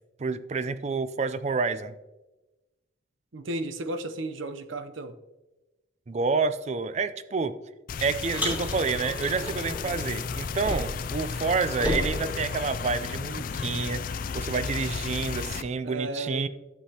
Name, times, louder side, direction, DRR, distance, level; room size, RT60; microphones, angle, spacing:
voice 1, 0.2-2.0 6.1-7.5 8.0-14.1 14.3-16.5, right 4 dB, 35° right, 13 dB, 0.4 m, -28 dB
voice 2, 3.3-5.1 15.8-16.5, right 2 dB, 85° right, 9 dB, 0.7 m, -34 dB
sound 1, 7.9-15.6, left 6 dB, 45° left, 0.3 m, -34 dB
Car, 8.3-11.1 11.4-13.2, equal, 10° right, 2.7 m, -34 dB
11.5 x 7.5 x 2.8 m, 1.1 s
head